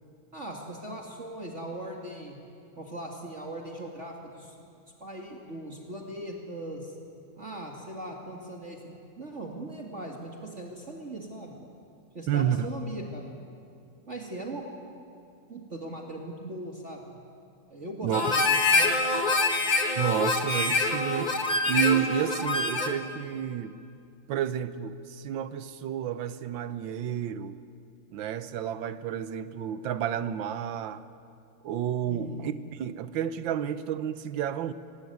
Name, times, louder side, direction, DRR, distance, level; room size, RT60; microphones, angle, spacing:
voice 1, 0.3-2.4 2.8-4.6 5.0-6.9 7.4-11.6 12.1-13.3 14.1-14.6 15.5-17.1 17.7-18.9 32.1-32.5, right 1 dB, 35° right, 0 dB, 2.3 m, -39 dB
voice 2, 12.3-12.7 18.0-18.2 20.0-21.3 21.7-23.8 24.3-27.6 28.1-31.0 31.6-32.5 32.8-34.7, right 9 dB, 70° right, 13 dB, 1.6 m, -30 dB
Harmonica, 18.1-23.0, left 3 dB, 25° left, 1.5 m, -25 dB
25.5 x 18.5 x 9.4 m, 2.5 s
omnidirectional pair, 2.3 m